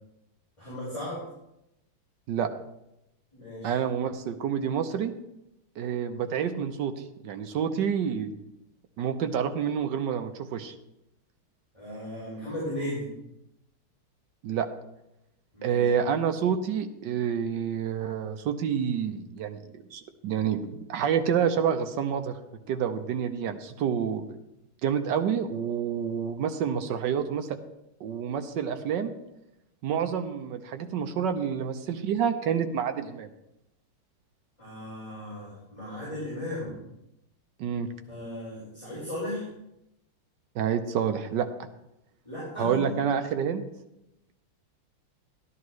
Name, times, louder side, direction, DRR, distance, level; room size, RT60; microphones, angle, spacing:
voice 1, 0.6-1.2 3.3-3.8 11.7-13.1 15.5-15.9 34.6-36.8 38.1-39.5 42.2-43.0, left 1 dB, 15° left, -9 dB, 4.9 m, -36 dB
voice 2, 3.6-5.1 5.8-6.9 7.2-8.3 9.0-10.7 14.4-14.7 15.6-19.6 19.9-20.6 20.9-22.3 22.7-24.2 24.8-27.6 28.0-29.1 29.8-33.3 37.6-37.9 40.5-41.5 42.6-43.6, right 8 dB, 70° right, 7 dB, 1.1 m, -28 dB
12.5 x 11.0 x 3.1 m, 0.87 s
omnidirectional pair, 2.4 m